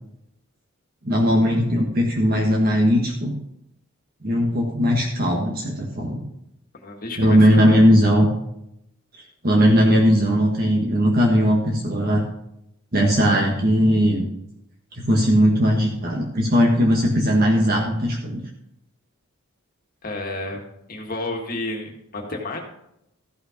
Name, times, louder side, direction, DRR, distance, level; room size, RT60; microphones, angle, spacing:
voice 1, 1.0-3.3 4.2-6.2 7.2-8.3 9.4-12.2 12.9-14.3 14.9-18.4, equal, 45° right, -1 dB, 1.5 m, -18 dB
voice 2, 6.8-7.8 20.0-20.6 20.9-22.6, left 2 dB, 40° left, 2 dB, 1.8 m, -31 dB
14.0 x 5.8 x 5.1 m, 0.80 s
head